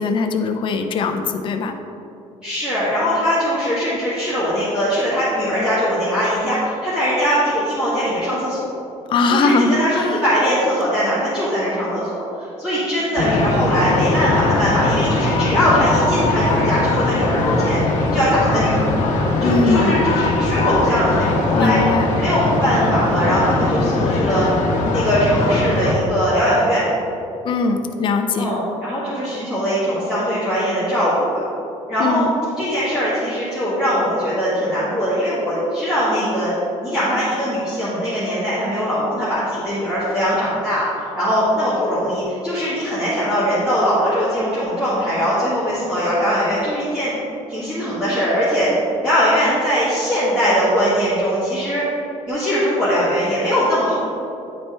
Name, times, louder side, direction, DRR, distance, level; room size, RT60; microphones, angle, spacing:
voice 1, 0.0-1.8 9.1-10.2 19.4-20.0 21.5-22.1 27.4-28.5 32.0-32.3, left 3 dB, 40° left, 5 dB, 0.5 m, -20 dB
voice 2, 2.4-8.6 9.3-17.8 18.1-18.9 19.4-21.8 22.2-24.5 24.9-26.8 28.4-31.4 31.9-32.3 32.6-36.5 36.8-40.8 41.1-47.1 47.5-48.7 49.0-51.8 52.3-53.9, equal, 5° right, -13 dB, 1.6 m, -20 dB
sound 1, 13.2-25.9, left 2 dB, 90° left, 1.0 m, -20 dB
9.8 x 4.3 x 3.4 m, 2.8 s
cardioid pair, 175°, 13 cm